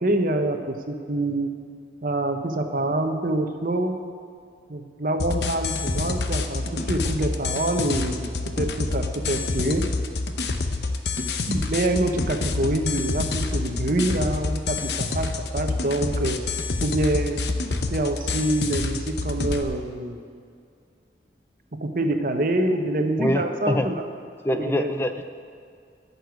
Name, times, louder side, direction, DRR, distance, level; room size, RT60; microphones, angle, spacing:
voice 1, 0.0-1.5 2.0-4.0 4.7-9.9 11.2-16.4 16.8-17.4 17.9-20.2 21.8-24.0 24.6-24.9, right 1 dB, 50° right, 5 dB, 1.0 m, -26 dB
sound 1, 5.2-19.6, left 3 dB, 70° left, 0.8 m, -28 dB
voice 2, 23.2-23.9 24.4-25.2, left 1 dB, 15° left, 7 dB, 0.4 m, -24 dB
11.0 x 6.8 x 9.4 m, 2.3 s
head